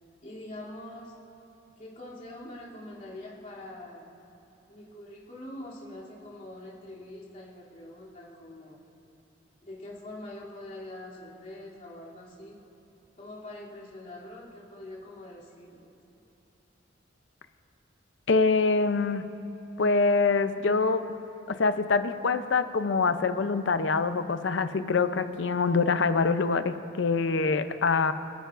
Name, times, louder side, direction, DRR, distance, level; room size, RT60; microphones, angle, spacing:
voice 1, 0.2-1.2 1.8-4.1 4.7-8.8 9.6-12.6 13.2-15.9, left 1 dB, 40° left, -7 dB, 2.8 m, -44 dB
voice 2, 18.3-19.2 19.8-21.0 21.5-28.1, left 4 dB, 65° left, 11 dB, 0.5 m, -25 dB
27.5 x 10.0 x 2.5 m, 2.9 s
head